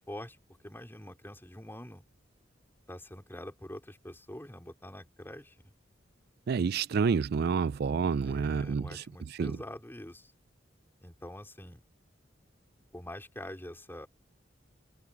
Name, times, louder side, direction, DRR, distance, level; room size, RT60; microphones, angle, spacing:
voice 1, 0.1-0.4 0.6-2.0 2.9-5.7 8.2-10.3 11.0-11.8 12.9-14.1, left 1 dB, 10° left, 4.3 m, -45 dB
voice 2, 6.5-9.0 9.3-9.6, right 5 dB, 55° right, 0.4 m, -29 dB
head